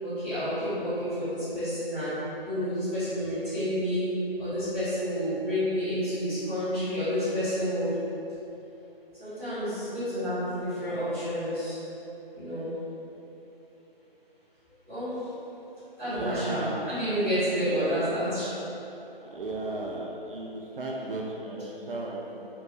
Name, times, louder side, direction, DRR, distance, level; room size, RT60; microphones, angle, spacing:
voice 1, 0.0-2.1 2.4-4.1 4.4-7.9 9.2-11.8 12.3-12.7 14.8-15.2 16.0-18.5, equal, 10° left, -19 dB, 1.3 m, -29 dB
voice 2, 16.0-16.9 17.6-18.1 19.2-22.5, right 2 dB, 65° right, -2 dB, 0.4 m, -35 dB
2.6 x 2.5 x 3.1 m, 3.0 s
figure-of-eight pair, 160°, 30 cm